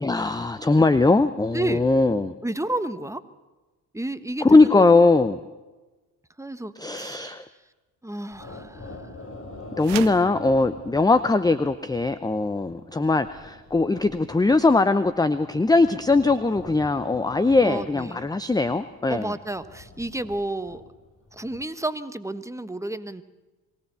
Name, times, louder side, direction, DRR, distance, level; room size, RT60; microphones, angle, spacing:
voice 1, 0.0-2.3 4.4-5.4 6.8-7.5 9.8-19.3, left 3 dB, 10° left, 13 dB, 0.7 m, -20 dB
voice 2, 2.4-3.2 3.9-5.1 6.4-7.4 8.0-9.1 17.6-18.3 19.1-20.8 21.3-23.2, right 2 dB, 5° right, 11 dB, 1.2 m, -31 dB
sound 1, 8.3-21.7, left 2 dB, 30° left, 3.8 m, -44 dB
sound 2, 9.8-10.3, right 17 dB, 80° right, 0.8 m, -33 dB
23.0 x 17.0 x 6.9 m, 1.2 s
hypercardioid pair, 55°, 45 cm